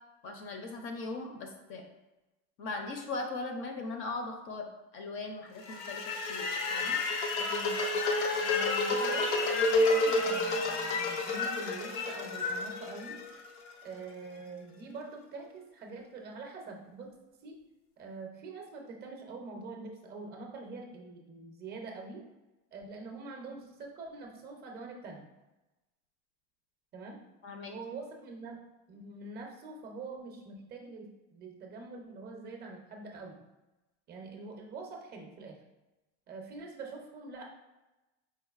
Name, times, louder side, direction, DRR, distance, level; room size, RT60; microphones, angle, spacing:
voice 1, 0.2-1.9 2.6-4.7 4.9-7.0 27.4-27.8, left 3 dB, 40° left, 3 dB, 0.5 m, -39 dB
sound 1, 5.6-13.7, left 2 dB, 85° left, 0.8 m, -30 dB
voice 2, 7.4-7.8 8.4-13.2 13.8-17.1 17.4-17.6 18.0-22.2 22.7-25.2 26.9-27.2 27.7-28.6 28.9-33.4 34.1-35.6 36.3-37.5, right 3 dB, 30° right, 2 dB, 0.5 m, -45 dB
4.6 x 3.7 x 2.3 m, 1.1 s
cardioid pair, 155°, 34 cm